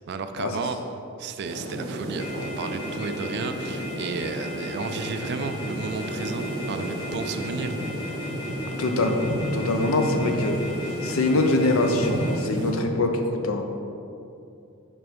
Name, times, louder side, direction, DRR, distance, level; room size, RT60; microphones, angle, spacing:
voice 1, 0.1-0.8 1.2-7.7, right 4 dB, 55° right, 9 dB, 0.4 m, -33 dB
sound 1, 1.4-12.7, right 1 dB, 80° right, 1.3 m, -32 dB
sound 2, 2.2-12.3, left 2 dB, 25° left, 1.1 m, -39 dB
voice 2, 8.8-9.2 9.5-10.6 11.0-13.6, left 2 dB, 70° left, 4 dB, 0.6 m, -23 dB
6.1 x 3.4 x 5.1 m, 2.6 s
head